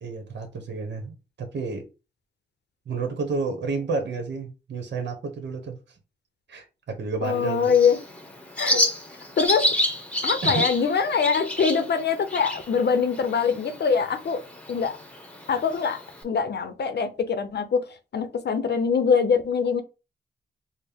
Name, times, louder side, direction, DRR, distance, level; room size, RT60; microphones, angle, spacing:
voice 1, 0.0-1.8 2.9-5.8 6.5-7.7 8.7-8.9 10.4-10.6, right 4 dB, 70° right, 4 dB, 1.0 m, -30 dB
voice 2, 7.2-8.0 8.6-8.8 9.4-9.7 10.2-14.4 14.7-15.0 15.5-17.8 18.1-19.8, left 6 dB, 65° left, 10 dB, 0.6 m, -23 dB
Bird, 7.3-16.2, left 1 dB, 5° left, 1.0 m, -30 dB
4.2 x 2.1 x 3.4 m, 0.29 s
cardioid pair, 85°, 19 cm